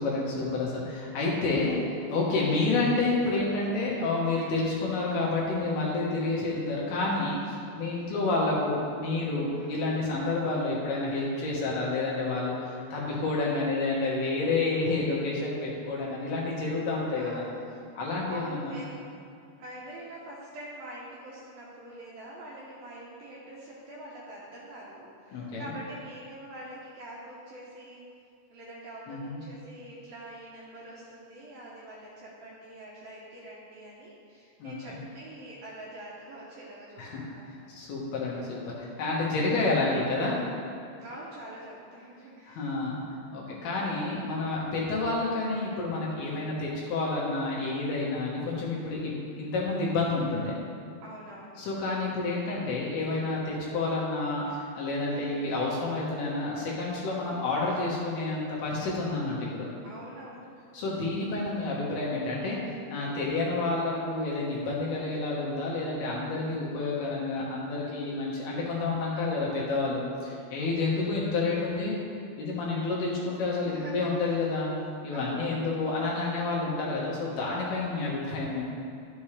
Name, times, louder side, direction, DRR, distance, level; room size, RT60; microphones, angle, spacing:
voice 1, 0.0-1.8 2.1-17.4 17.9-18.8 25.3-25.7 29.1-29.4 34.6-35.0 37.0-37.3 37.7-40.4 42.5-43.0 43.3-50.5 51.6-59.7 60.7-62.6 62.9-71.9 72.4-74.7 75.0-78.6, left 3 dB, 70° left, -5 dB, 2.9 m, -29 dB
voice 2, 6.3-6.6 9.5-9.9 17.2-17.7 18.3-18.9 19.6-28.0 28.5-37.7 39.8-40.1 41.0-42.7 51.0-51.6 55.1-55.5 59.8-60.5 70.9-71.1 73.6-74.4 75.1-75.7, right 1 dB, 70° right, -6 dB, 2.4 m, -45 dB
11.5 x 7.3 x 3.3 m, 2.5 s
omnidirectional pair, 5.2 m